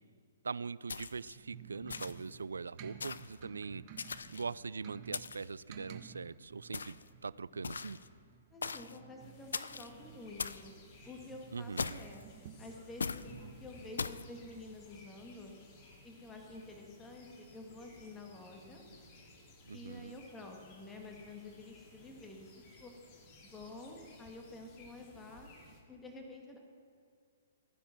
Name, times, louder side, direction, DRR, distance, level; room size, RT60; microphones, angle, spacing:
voice 1, 0.4-3.8 4.3-7.0 7.2-8.0 11.5-12.0 19.7-20.1, right 4 dB, 80° right, 20 dB, 0.3 m, -42 dB
sound 1, 0.9-1.4 1.9-2.3 3.0-3.4 4.0-4.5 5.1-5.5 6.7-7.1 7.6-8.1 8.6-9.0 9.5-9.9 10.4-10.7 11.8-12.2 13.0-13.3 14.0-14.3, left 5 dB, 75° left, 0.5 m, -40 dB
sound 2, 1.0-14.6, right 7 dB, 35° right, 1.3 m, -55 dB
voice 2, 8.5-10.7 11.0-12.2 12.6-13.3 13.6-15.5 16.0-18.8 19.7-22.5 22.8-22.9 23.4-25.5 25.9-26.6, left 2 dB, 10° left, 1 dB, 1.9 m, -50 dB
sound 3, 9.2-25.8, left 2 dB, 35° left, 2.6 m, -59 dB
15.0 x 10.0 x 6.1 m, 2.4 s
figure-of-eight pair, 120°, 0 cm